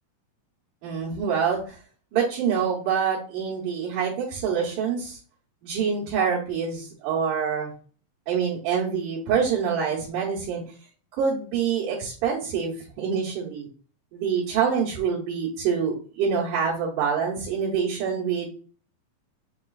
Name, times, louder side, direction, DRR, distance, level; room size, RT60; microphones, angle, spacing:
voice 1, 0.8-1.8 2.1-5.2 5.6-7.7 8.3-10.6 11.1-13.7 14.1-18.5, right 6 dB, 75° right, -6 dB, 2.6 m, -26 dB
6.6 x 3.0 x 2.4 m, 0.41 s
omnidirectional pair, 3.7 m